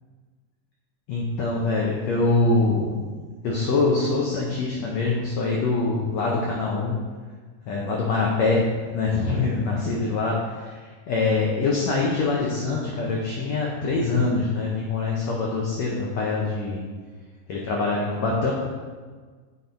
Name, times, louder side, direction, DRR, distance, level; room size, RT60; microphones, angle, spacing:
voice 1, 1.1-2.9 3.4-6.9 7.7-8.6 8.9-10.3 10.7-10.8 11.1-16.8 17.5-18.5, left 3 dB, 85° left, -3 dB, 1.5 m, -24 dB
8.1 x 4.1 x 4.3 m, 1.5 s
omnidirectional pair, 4.2 m